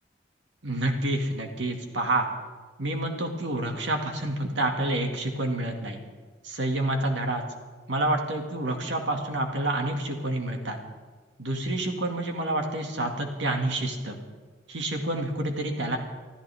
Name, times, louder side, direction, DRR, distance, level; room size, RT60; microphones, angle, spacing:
voice 1, 0.6-2.3 2.8-6.0 6.4-7.4 7.9-10.8 11.4-14.2 14.7-16.0, right 1 dB, 80° right, 3 dB, 2.2 m, -28 dB
25.5 x 14.0 x 3.6 m, 1.4 s
head